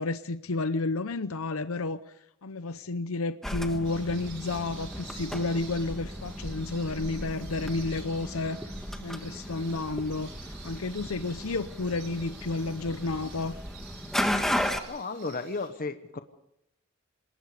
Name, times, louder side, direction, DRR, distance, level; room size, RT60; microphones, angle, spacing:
voice 1, 0.0-8.7 9.0-13.6, left 3 dB, 80° left, 0.7 m, -31 dB
sound 1, 3.4-14.8, left 1 dB, ahead, 1.6 m, -35 dB
sound 2, 3.8-15.7, right 5 dB, 55° right, 6.2 m, -50 dB
voice 2, 14.9-16.2, left 3 dB, 45° left, 1.1 m, -34 dB
28.0 x 20.0 x 5.1 m
head